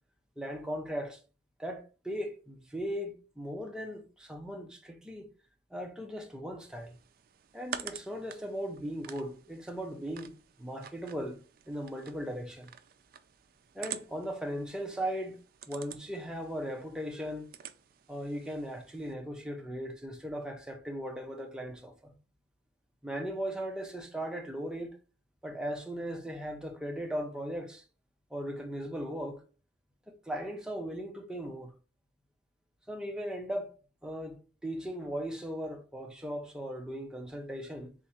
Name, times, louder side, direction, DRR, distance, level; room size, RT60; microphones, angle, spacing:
voice 1, 0.4-1.2 1.6-5.3 5.7-7.0 7.5-10.3 10.6-11.4 11.7-12.7 13.7-15.4 15.7-17.5 18.1-22.2 23.0-24.9 25.4-27.8 28.3-29.4 30.1-31.7 32.9-33.7 34.0-37.9, equal, 5° right, 0.7 m, -38 dB
sound 1, 6.6-19.1, right 9 dB, 55° right, 0.4 m, -48 dB
3.6 x 2.9 x 4.2 m
head